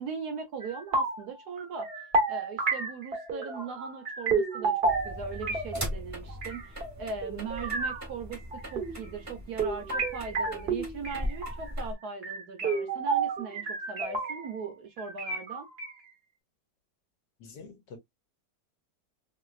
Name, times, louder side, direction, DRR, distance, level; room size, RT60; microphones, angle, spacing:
voice 1, 0.0-1.9 2.3-15.7, right 5 dB, 65° right, 1.1 m, -39 dB
sound 1, 0.6-1.3 1.6-5.9 6.3-8.0 8.3-9.1 9.6-11.7 12.2-14.7 15.0-15.9, right 3 dB, 40° right, 0.9 m, -31 dB
sound 2, 4.8-11.9, equal, 15° right, 0.7 m, -39 dB
voice 2, 17.4-18.0, left 4 dB, 65° left, 1.2 m, -46 dB
3.1 x 2.9 x 2.3 m
omnidirectional pair, 2.1 m